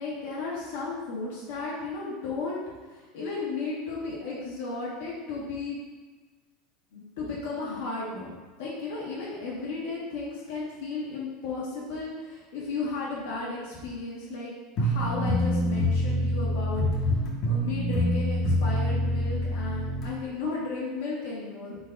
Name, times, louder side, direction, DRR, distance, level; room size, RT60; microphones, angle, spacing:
voice 1, 0.0-2.6 2.9-5.8 6.9-8.3 8.6-17.2 17.4-21.8, left 3 dB, 80° left, -7 dB, 1.4 m, -34 dB
sound 1, 14.8-20.1, equal, 35° left, 0.9 m, -26 dB
3.9 x 2.5 x 4.5 m, 1.3 s
supercardioid pair, 165°, 0 cm